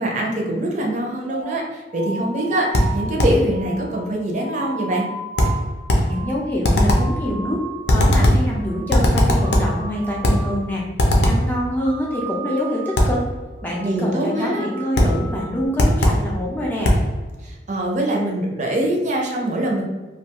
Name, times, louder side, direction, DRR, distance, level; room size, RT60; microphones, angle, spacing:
voice 1, 0.0-5.1 13.8-14.7 17.4-19.8, right 1 dB, 40° right, -1 dB, 0.5 m, -23 dB
sound 1, 1.3-8.3 8.5-9.0 9.3-10.8 11.1-11.5 11.8-13.3 13.6-14.0 14.3-15.7, right 3 dB, 90° right, 0.9 m, -35 dB
sound 2, 2.7-3.5 5.4-6.2 6.6-7.2 7.9-8.5 8.9-9.8 10.2-10.5 11.0-11.5 13.0-13.2 15.0-15.2 15.8-16.3 16.8-17.1, left 1 dB, 70° left, 0.5 m, -17 dB
voice 2, 6.1-10.8 11.3-13.2 13.6-16.9, equal, 10° left, -4 dB, 0.4 m, -25 dB
2.3 x 2.3 x 2.8 m, 1.2 s
head